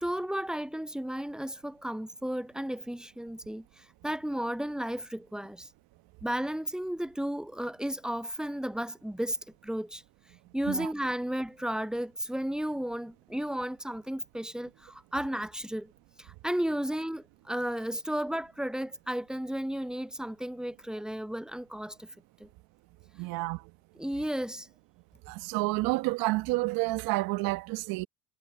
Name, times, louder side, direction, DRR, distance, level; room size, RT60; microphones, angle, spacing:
voice 1, 0.0-5.7 6.2-9.4 9.6-10.0 10.5-15.9 16.2-22.1 22.4-22.5 24.0-24.7, equal, ahead, 0.6 m, -33 dB
voice 2, 23.2-23.6 25.3-28.1, right 21 dB, 70° right, 1.2 m, -29 dB
hypercardioid pair, 70°, 37 cm